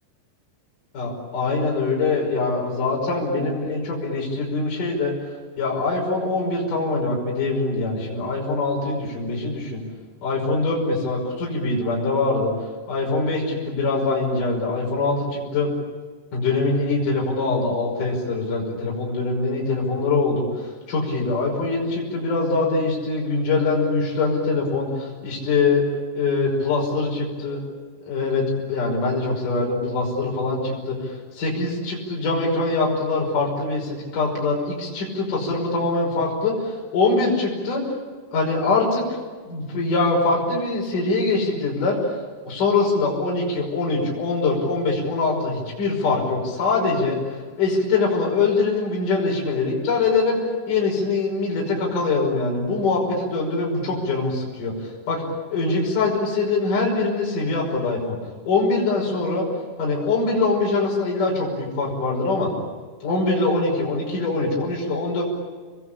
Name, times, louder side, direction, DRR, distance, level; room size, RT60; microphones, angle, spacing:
voice 1, 0.9-5.1 5.6-9.8 10.2-12.5 12.9-15.7 16.3-25.8 26.1-27.6 28.1-37.8 38.3-39.0 39.5-42.0 42.4-47.2 47.6-50.4 50.7-55.2 55.5-58.2 58.5-59.5 59.8-62.5 63.0-65.2, left 3 dB, 50° left, -3 dB, 7.1 m, -23 dB
28.5 x 21.5 x 8.9 m, 1.4 s
omnidirectional pair, 4.9 m